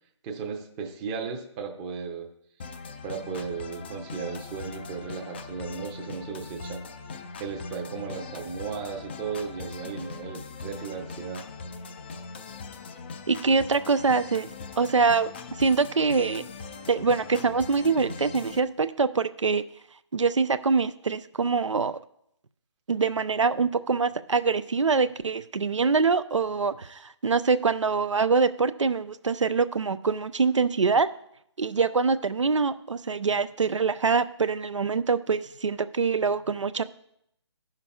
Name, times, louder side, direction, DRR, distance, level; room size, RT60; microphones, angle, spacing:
voice 1, 0.2-2.3 3.0-6.8 7.4-11.5, right 5 dB, 15° right, 3 dB, 0.6 m, -35 dB
sound 1, 2.6-18.6, left 4 dB, 20° left, 0.3 m, -40 dB
voice 2, 13.3-14.5 14.8-15.3 15.6-16.4 16.9-19.6 20.1-22.0 22.9-31.1 31.6-36.8, right 4 dB, 85° right, 12 dB, 0.4 m, -24 dB
15.5 x 5.7 x 2.3 m, 0.74 s
figure-of-eight pair, 145°, 15 cm